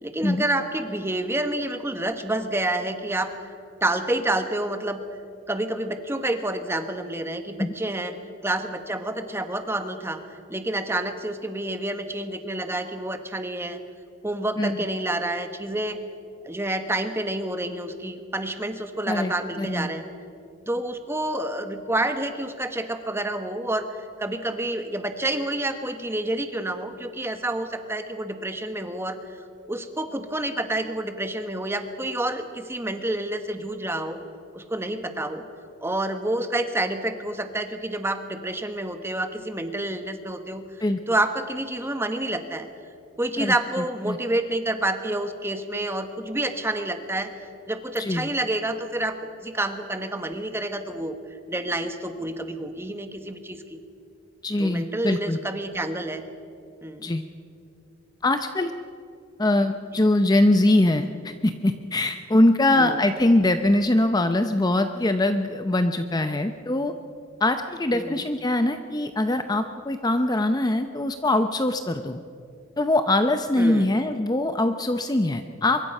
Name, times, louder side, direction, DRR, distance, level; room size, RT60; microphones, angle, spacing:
voice 1, 0.0-3.3 3.8-5.0 5.5-8.1 8.4-10.2 10.5-13.8 14.2-16.0 16.4-20.1 20.7-29.4 29.7-34.2 34.5-35.4 35.8-40.6 41.1-42.7 43.2-47.3 47.7-49.2 49.4-51.2 51.5-53.8 54.6-56.2 56.8-57.1 59.9-60.0 62.8-63.0 67.9-68.2 73.6-73.9, right 1 dB, 15° right, 8 dB, 1.2 m, -28 dB
voice 2, 19.6-19.9 40.8-41.0 43.4-44.2 48.0-48.3 54.4-55.4 57.0-57.2 58.2-58.7 59.4-66.9 67.4-72.2 72.8-75.8, left 1 dB, 20° left, 8 dB, 0.6 m, -22 dB
24.0 x 22.5 x 5.5 m, 2.4 s
head